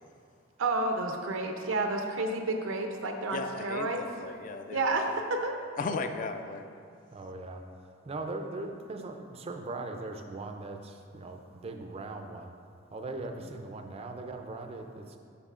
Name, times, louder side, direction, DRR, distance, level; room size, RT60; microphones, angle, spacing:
voice 1, 0.6-4.0 4.7-5.6, right 2 dB, 75° right, 4 dB, 0.6 m, -30 dB
voice 2, 3.3-5.1 5.8-6.7 13.4-13.5, left 4 dB, 40° left, 7 dB, 0.3 m, -36 dB
voice 3, 7.1-7.6 8.1-10.8 11.1-11.4 11.6-12.5 12.9-15.2, right 2 dB, 30° right, 5 dB, 0.4 m, -39 dB
11.0 x 4.1 x 2.4 m, 2.3 s
head